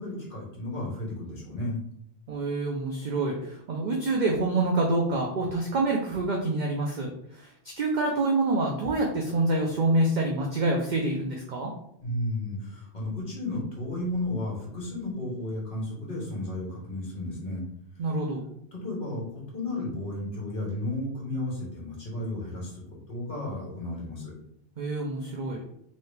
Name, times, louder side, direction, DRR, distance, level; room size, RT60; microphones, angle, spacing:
voice 1, 0.0-1.8 12.0-17.6 18.7-19.2 19.5-24.3, left 1 dB, 45° left, -4 dB, 1.3 m, -33 dB
voice 2, 2.3-11.7 18.0-18.5 24.8-25.6, right 2 dB, 55° right, 0 dB, 0.5 m, -27 dB
3.0 x 2.7 x 3.2 m, 0.74 s
omnidirectional pair, 1.2 m